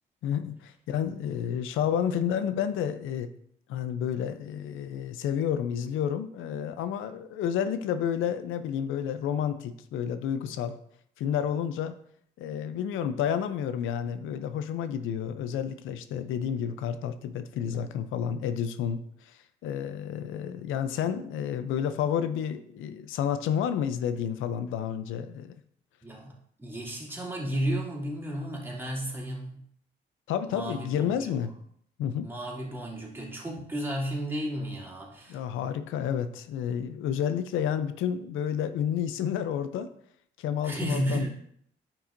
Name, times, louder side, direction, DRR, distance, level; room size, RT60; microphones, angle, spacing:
voice 1, 0.2-3.3 3.7-10.8 11.2-11.9 12.4-25.6 30.3-31.5 32.0-32.3 35.3-39.9 40.4-41.3, left 8 dB, 85° left, 11 dB, 0.5 m, -30 dB
voice 2, 26.0-29.6 30.5-31.4 32.2-35.4 40.6-41.3, right 1 dB, 10° right, -4 dB, 2.5 m, -33 dB
9.6 x 6.0 x 2.6 m, 0.66 s
cardioid pair, 90°, 20 cm